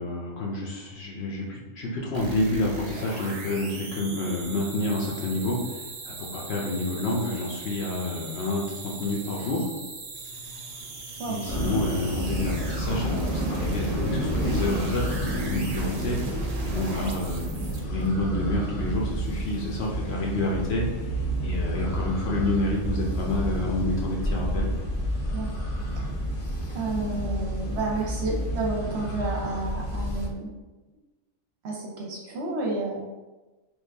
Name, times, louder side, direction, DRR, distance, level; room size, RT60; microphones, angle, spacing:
voice 1, 0.0-9.7 11.2-16.2 16.6-17.5 17.9-21.1 21.4-24.7, left 2 dB, 60° left, -2 dB, 0.8 m, -29 dB
sound 1, 2.1-18.1, right 3 dB, 90° right, 0.3 m, -39 dB
sound 2, 11.5-30.3, right 1 dB, 45° left, 0.4 m, -30 dB
voice 2, 26.7-30.5 31.6-33.1, right 2 dB, 65° right, -2 dB, 0.8 m, -30 dB
3.2 x 2.4 x 3.3 m, 1.2 s
omnidirectional pair, 1.4 m